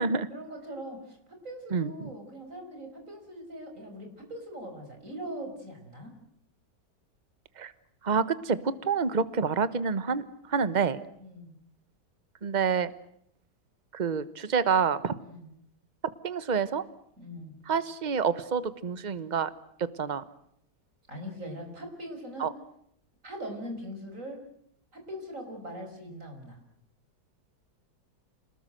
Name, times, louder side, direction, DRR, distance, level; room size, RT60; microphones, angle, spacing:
voice 1, 0.3-6.1 11.2-11.6 15.2-15.5 17.2-17.6 21.1-22.5 23.2-24.4 24.9-26.6, equal, 45° right, 3 dB, 6.0 m, -41 dB
voice 2, 1.7-2.1 7.6-7.7 8.0-11.0 12.4-12.9 13.9-15.1 16.2-16.8 17.7-19.5 19.8-20.2 22.4-22.5, right 6 dB, 30° right, 15 dB, 1.1 m, -28 dB
28.0 x 20.0 x 7.9 m, 0.70 s
omnidirectional pair, 1.9 m